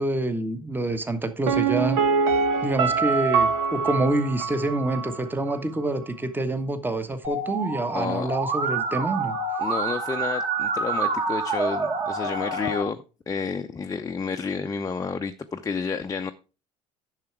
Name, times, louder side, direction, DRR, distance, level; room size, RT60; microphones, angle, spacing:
voice 1, 0.0-2.0 2.6-9.4, right 2 dB, 10° right, 1.3 m, -27 dB
Piano, 1.5-5.2 5.5-5.6, right 5 dB, 70° right, 1.2 m, -24 dB
Musical instrument, 7.2-12.8, right 3 dB, 30° right, 2.4 m, -27 dB
voice 2, 7.9-8.3 9.6-16.3, left 5 dB, 20° left, 0.7 m, -30 dB
10.5 x 6.5 x 4.6 m
hypercardioid pair, 65°, 17 cm